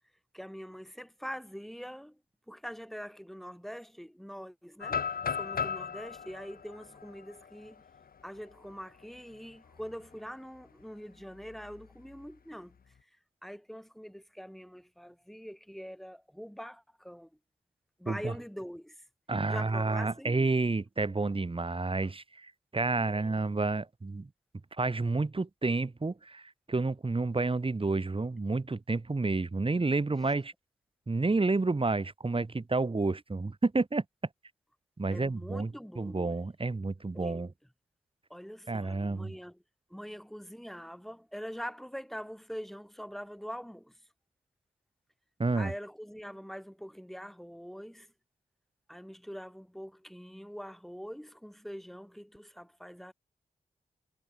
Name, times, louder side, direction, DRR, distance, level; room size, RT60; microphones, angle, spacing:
voice 1, 0.3-2.2 2.5-5.0 5.4-7.8 8.2-12.8 13.4-17.3 18.0-19.0 19.5-20.4 23.1-23.4 35.1-36.2 37.1-37.4 38.3-39.6 39.9-44.0 45.5-48.1 48.9-53.1, equal, ahead, 7.4 m, -44 dB
sound 1, 4.8-8.7 9.2-9.3 9.7-10.0 11.4-12.2, left 6 dB, 75° left, 6.2 m, -37 dB
voice 2, 19.3-24.3 24.8-26.4 26.7-30.5 31.1-34.0 35.0-37.5 38.7-39.3 45.4-45.7, right 3 dB, 35° right, 3.1 m, -30 dB
cardioid pair, 45°, 15 cm